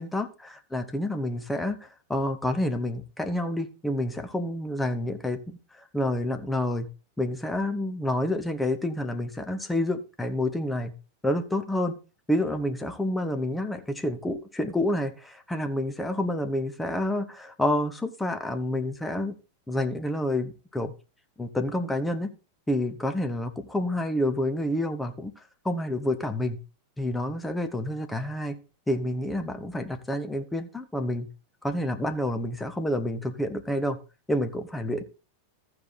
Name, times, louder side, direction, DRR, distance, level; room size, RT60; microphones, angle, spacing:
voice 1, 0.0-6.9 7.2-10.9 11.2-11.9 12.3-19.3 19.7-20.9 21.4-22.3 22.7-26.6 27.0-28.6 28.9-31.3 31.6-34.0 34.3-35.0, left 1 dB, 5° left, 7 dB, 1.0 m, -29 dB
14.5 x 4.8 x 4.2 m, 0.34 s
figure-of-eight pair, 90°, 0 cm